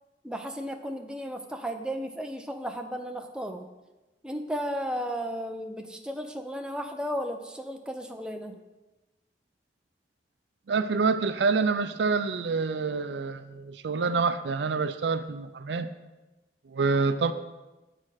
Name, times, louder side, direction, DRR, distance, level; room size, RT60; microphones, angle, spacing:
voice 1, 0.2-3.7 4.2-8.6, equal, 5° right, 4 dB, 0.5 m, -34 dB
voice 2, 10.7-15.9 16.7-17.3, right 4 dB, 80° right, 11 dB, 0.4 m, -27 dB
7.9 x 4.2 x 6.4 m, 1.1 s
head